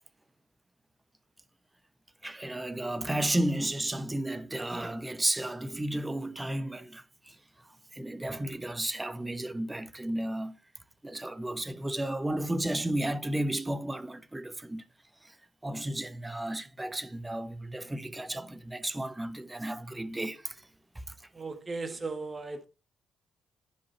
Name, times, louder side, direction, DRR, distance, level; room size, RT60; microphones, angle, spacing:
voice 1, 2.2-7.4 7.9-10.6 11.0-14.8 15.2-15.3 15.6-20.7 20.9-21.0, right 1 dB, 15° right, 1.0 m, -33 dB
voice 2, 21.3-22.7, right 3 dB, 30° right, 1.5 m, -36 dB
10.0 x 5.2 x 4.2 m
figure-of-eight pair, 40°, 0 cm